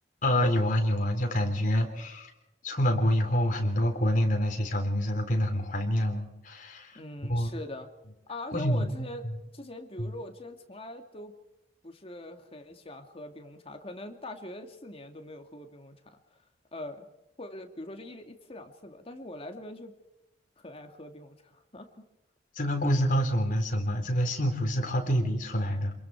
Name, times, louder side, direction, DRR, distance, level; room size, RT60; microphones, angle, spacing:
voice 1, 0.2-2.3 2.6-7.0 7.3-7.5 8.5-8.9 10.0-10.1 22.6-25.9, equal, 50° left, 3 dB, 3.7 m, -27 dB
voice 2, 6.9-7.9 8.3-11.3 11.8-16.2 16.7-17.1 17.4-19.9 20.6-22.1, left 1 dB, 35° left, 5 dB, 2.2 m, -42 dB
27.5 x 22.0 x 4.8 m, 0.96 s
head